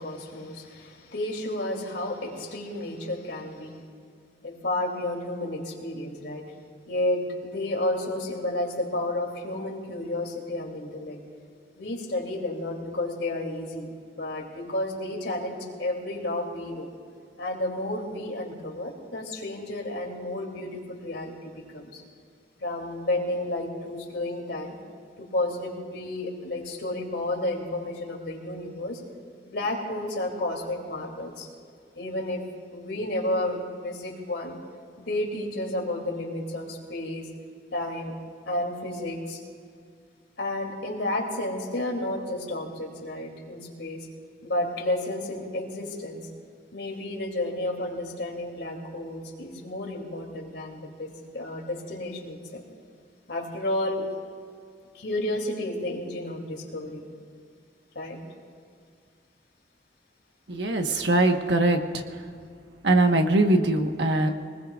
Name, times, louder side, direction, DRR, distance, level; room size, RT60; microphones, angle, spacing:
voice 1, 0.0-3.8 4.4-6.5 6.9-11.2 11.8-13.9 14.2-16.9 17.4-22.0 22.6-24.8 25.2-29.0 29.4-31.5 31.9-34.6 35.0-37.3 37.7-38.1 38.5-39.4 40.4-44.1 44.4-46.2 46.7-52.6 53.3-54.1 54.9-57.1 57.9-58.2 61.0-61.1, left 1 dB, 80° left, 0 dB, 2.9 m, -31 dB
voice 2, 60.5-62.0 62.8-64.3, right 2 dB, 85° right, 4 dB, 1.3 m, -22 dB
24.5 x 20.0 x 2.5 m, 2.2 s
head